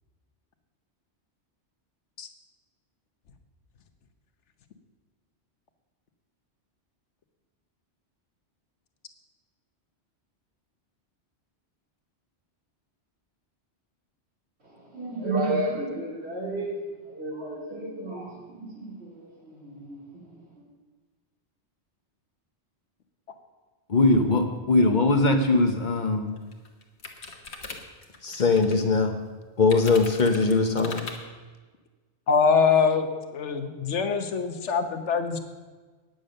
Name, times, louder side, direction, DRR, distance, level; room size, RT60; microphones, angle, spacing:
voice 1, 14.6-20.5, right 2 dB, 65° right, 3.1 m, -32 dB
voice 2, 23.9-26.3 28.2-29.1 29.6-31.0, left 3 dB, 45° left, 1.0 m, -21 dB
sound 1, 25.9-26.0 26.4-28.8 29.7-31.2, left 4 dB, 70° left, 1.6 m, -40 dB
voice 3, 32.3-35.4, left 5 dB, 90° left, 1.3 m, -23 dB
9.3 x 8.9 x 6.5 m
omnidirectional pair, 1.2 m